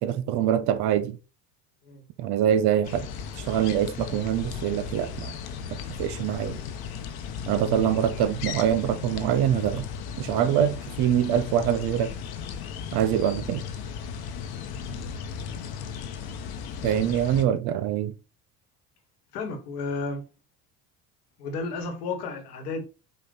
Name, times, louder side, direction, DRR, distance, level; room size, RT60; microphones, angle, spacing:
voice 1, 0.0-1.2 2.2-3.1 3.4-5.4 6.0-6.6 7.5-9.9 10.2-12.1 12.9-13.6 16.8-18.1, right 10 dB, 55° right, 0.8 m, -24 dB
sound 1, 2.8-17.4, left 7 dB, 50° left, 0.8 m, -36 dB
voice 2, 19.3-20.2 21.4-22.8, left 3 dB, 80° left, 1.3 m, -32 dB
5.3 x 2.4 x 3.8 m
hypercardioid pair, 65°, 46 cm